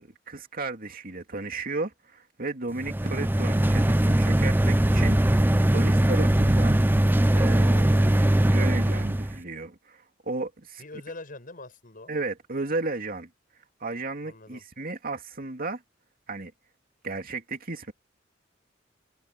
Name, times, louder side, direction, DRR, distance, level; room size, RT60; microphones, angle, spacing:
voice 1, 0.0-6.8 7.3-10.8 12.1-13.3 13.8-15.8 16.3-16.5 17.0-17.9, right 3 dB, 50° right, 2.5 m, -34 dB
sound 1, 2.7-9.4, right 1 dB, 10° right, 0.5 m, -21 dB
voice 2, 3.0-3.3 10.8-12.1 14.2-14.6, left 2 dB, 50° left, 6.6 m, -43 dB
head